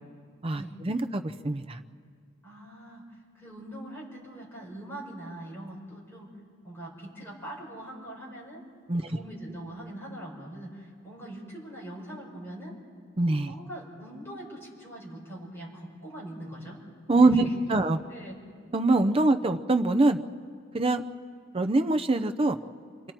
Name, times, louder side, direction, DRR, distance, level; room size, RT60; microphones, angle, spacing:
voice 1, 0.4-1.6 8.9-9.0 13.2-13.5 17.1-17.4 17.7-18.0 18.7-20.2 20.7-21.0 21.5-22.6, right 2 dB, 25° right, 8 dB, 0.6 m, -23 dB
voice 2, 2.4-6.4 6.6-8.6 9.0-12.8 13.5-16.8 17.1-17.8 18.1-18.4, right 1 dB, 10° left, -5 dB, 5.0 m, -42 dB
28.0 x 24.0 x 4.5 m, 2.2 s
head